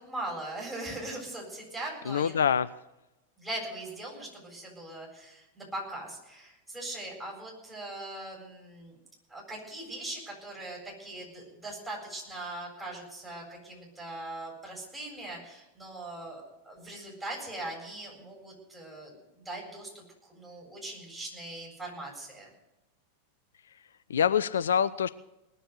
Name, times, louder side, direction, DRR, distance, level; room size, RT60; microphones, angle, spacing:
voice 1, 0.0-2.4 3.4-9.0 9.3-19.1 19.4-20.0 20.3-22.5, right 1 dB, 10° right, -3 dB, 7.9 m, -40 dB
voice 2, 2.1-2.7 24.1-25.1, left 8 dB, 65° left, 15 dB, 0.4 m, -25 dB
19.5 x 7.7 x 8.1 m, 0.95 s
figure-of-eight pair, 90°, 0 cm